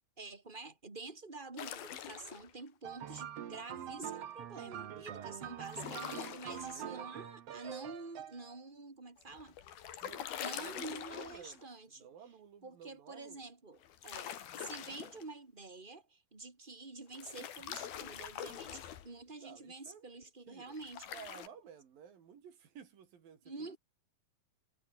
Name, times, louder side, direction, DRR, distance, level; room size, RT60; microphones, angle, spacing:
voice 1, 0.2-9.6 10.4-12.1 12.6-13.8 14.0-21.1 23.4-23.8, right 3 dB, 15° right, 3.0 m, -48 dB
sound 1, 1.6-2.5 5.6-6.8 9.2-11.6 13.8-15.2 17.1-19.1 20.7-21.5, left 10 dB, 85° left, 4.0 m, -44 dB
sound 2, 2.8-8.6, right 10 dB, 55° right, 2.1 m, -45 dB
voice 2, 4.9-5.4 6.7-7.3 10.0-10.8 11.1-13.5 19.4-20.8 21.1-23.8, right 7 dB, 70° right, 4.8 m, -55 dB
omnidirectional pair, 4.2 m